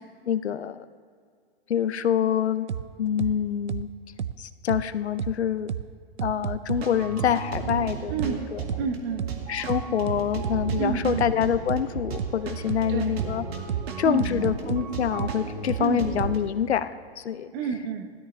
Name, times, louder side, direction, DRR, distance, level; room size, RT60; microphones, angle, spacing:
voice 1, 0.3-0.8 1.7-2.7 3.0-3.9 4.4-5.7 6.2-8.6 9.5-13.4 14.0-17.5, left 9 dB, 80° left, 12 dB, 0.7 m, -26 dB
sound 1, 2.7-2.8 3.2-3.3 3.7-3.8 4.2-4.3 4.7-4.8 5.2-5.3 5.7-5.8 6.2-6.8 7.2-7.3 7.7-7.8 8.2-8.3 8.7-8.8 9.2-9.3 9.7-10.8 11.2-11.3 11.7-11.8 12.2-12.3 12.7-12.8 13.2-13.3 13.7-13.8 14.2-14.8 15.2-15.3 15.7-15.8 16.2-16.3, right 8 dB, 90° right, 0.6 m, -30 dB
sound 2, 6.7-16.4, right 5 dB, 70° right, 2.0 m, -35 dB
voice 2, 8.1-8.5 8.8-9.3 10.8-11.3 12.9-13.3 14.0-14.5 15.8-16.1 17.5-18.1, right 6 dB, 40° right, 7 dB, 1.1 m, -30 dB
17.0 x 13.0 x 3.3 m, 2.1 s
hypercardioid pair, 115°, 32 cm